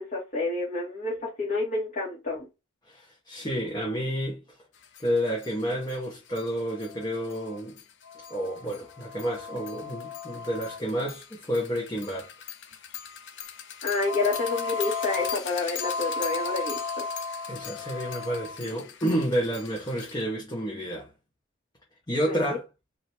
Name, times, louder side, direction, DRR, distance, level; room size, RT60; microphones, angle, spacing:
voice 1, 0.0-2.5 13.8-17.0 22.2-22.4, left 3 dB, 40° left, 1.6 m, -29 dB
voice 2, 2.9-4.4 5.0-7.8 8.3-12.3 17.5-21.1 22.1-22.6, equal, 20° left, 1.0 m, -30 dB
sound 1, 5.0-5.1 5.4-5.5 5.9-6.0 6.3-20.2, left 5 dB, 60° left, 0.6 m, -36 dB
4.3 x 2.9 x 3.3 m
head